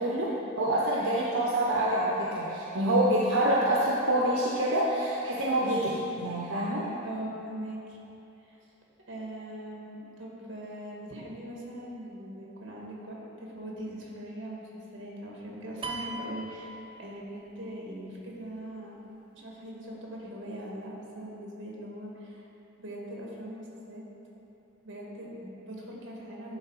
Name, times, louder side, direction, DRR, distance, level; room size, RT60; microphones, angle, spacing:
voice 1, 0.0-6.9, right 1 dB, 85° right, -4 dB, 0.8 m, -26 dB
voice 2, 7.0-8.0 8.5-8.6 9.1-18.9 19.3-22.4 22.8-24.0 24.8-26.6, right 1 dB, 65° right, -3 dB, 1.5 m, -41 dB
sound 1, 15.8-17.5, right 2 dB, 25° right, 0.4 m, -39 dB
10.5 x 3.6 x 4.7 m, 2.9 s
head